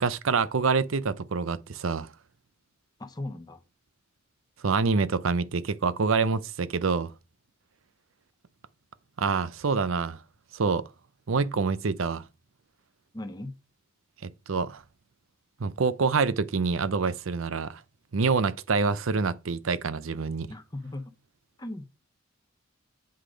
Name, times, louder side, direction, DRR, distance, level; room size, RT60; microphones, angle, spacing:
voice 1, 0.0-2.1 4.6-7.1 9.2-10.2 10.5-10.8 11.3-12.3 14.2-14.8 15.6-17.8 18.1-20.5, right 4 dB, 80° right, 0.6 m, -26 dB
voice 2, 3.0-3.6 13.1-13.5 20.5-21.0 21.6-21.9, left 1 dB, 20° left, 0.8 m, -37 dB
7.9 x 5.0 x 5.1 m
head